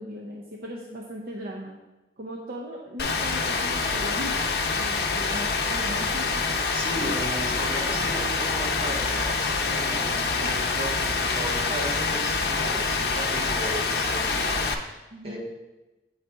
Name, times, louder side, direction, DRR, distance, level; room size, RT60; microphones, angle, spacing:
voice 1, 0.0-1.8 2.2-4.4 4.7-6.4 6.9-7.1 10.3-10.5 15.1-15.4, equal, 55° right, -1 dB, 0.6 m, -38 dB
Rain, 3.0-14.7, left 4 dB, 60° left, 0.6 m, -26 dB
voice 2, 6.7-10.1 10.4-15.4, right 1 dB, 35° right, -4 dB, 1.8 m, -35 dB
7.9 x 4.0 x 4.5 m, 1.1 s
head